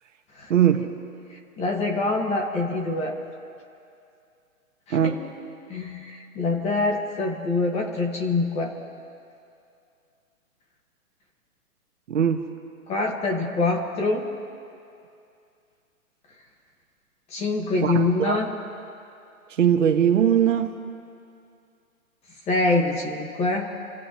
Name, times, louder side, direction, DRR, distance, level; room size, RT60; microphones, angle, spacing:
voice 1, 0.5-0.8 4.9-5.3 12.1-12.5 17.8-18.4 19.6-20.8, right 9 dB, 55° right, 5 dB, 1.8 m, -20 dB
voice 2, 1.6-3.2 4.9-5.1 5.7-6.1 6.4-8.7 12.9-14.2 17.3-18.5 22.5-23.7, left 2 dB, 15° left, 1 dB, 1.8 m, -24 dB
28.5 x 15.5 x 3.2 m, 2.5 s
hypercardioid pair, 145°, 44 cm